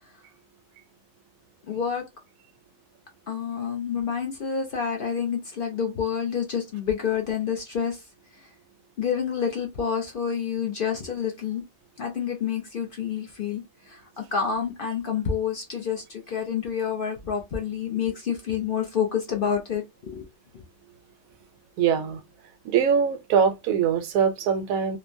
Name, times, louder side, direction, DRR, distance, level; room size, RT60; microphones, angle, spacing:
voice 1, 1.7-2.0 3.3-8.0 9.0-11.6 12.0-20.3, left 7 dB, 55° left, 0.6 m, -28 dB
voice 2, 21.8-22.2 22.6-25.0, right 7 dB, 80° right, 1.0 m, -22 dB
3.2 x 2.1 x 2.5 m
omnidirectional pair, 1.4 m